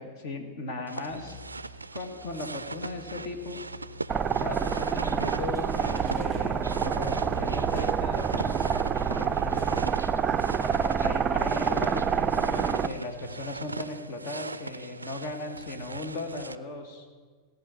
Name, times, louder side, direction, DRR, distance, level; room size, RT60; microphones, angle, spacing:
voice 1, 0.0-1.4 1.9-3.6 4.3-8.7 9.1-9.8 11.0-17.1, left 2 dB, 45° left, 6 dB, 1.7 m, -37 dB
sound 1, 0.9-16.6, right 3 dB, 80° right, 0.4 m, -40 dB
sound 2, 1.1-9.9, right 3 dB, 80° left, 2.1 m, -45 dB
sound 3, 4.1-12.9, right 7 dB, 25° right, 0.5 m, -27 dB
16.5 x 5.7 x 9.4 m, 1.5 s
figure-of-eight pair, 90°, 0 cm